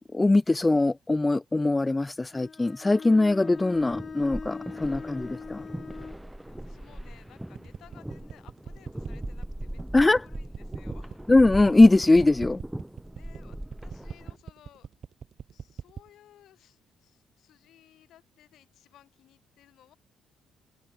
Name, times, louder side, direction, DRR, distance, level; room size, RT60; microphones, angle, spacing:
voice 1, 0.1-5.7 9.9-10.2 11.3-12.6, left 2 dB, 15° left, 0.4 m, -21 dB
Bowed string instrument, 2.3-6.3, left 5 dB, 40° left, 1.1 m, -41 dB
sound 1, 3.7-14.4, right 1 dB, 5° right, 2.8 m, -40 dB
voice 2, 6.5-11.2 13.1-14.9 15.5-20.0, left 12 dB, 75° left, 7.9 m, -58 dB
sound 2, 7.6-16.1, right 7 dB, 55° right, 2.4 m, -41 dB
cardioid pair, 90°, 0 cm